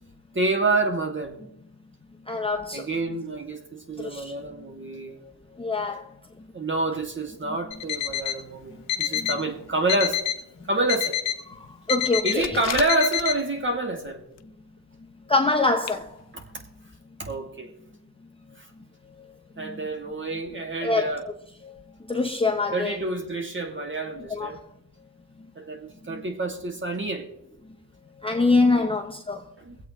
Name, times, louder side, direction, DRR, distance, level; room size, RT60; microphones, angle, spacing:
voice 1, 0.3-1.4 2.7-5.2 6.5-10.2 10.7-11.2 12.2-14.2 16.3-16.4 17.2-17.7 18.6-18.7 19.6-21.2 22.7-24.6 25.6-27.3 28.8-28.9 29.6-29.8, right 2 dB, 25° right, 2.4 m, -28 dB
voice 2, 2.3-2.9 4.0-4.3 5.6-6.1 7.5-7.6 9.1-9.3 11.5-12.5 15.3-16.2 19.2-19.3 19.6-19.9 20.8-21.3 21.6-21.8 22.1-22.9 24.3-24.6 26.1-26.2 28.2-29.5, left 3 dB, 10° left, 0.9 m, -25 dB
Alarm, 7.7-8.4 8.9-9.4 9.9-10.4 10.9-11.4 11.9-12.4 12.9-13.4, left 11 dB, 80° left, 1.3 m, -27 dB
sound 1, 12.2-13.6 14.0-14.5 14.8-14.9 15.5-15.6 15.8-16.0 16.4-16.5 16.9-17.0, left 11 dB, 40° left, 0.5 m, -35 dB
23.0 x 8.2 x 3.2 m
cardioid pair, 85°, 45 cm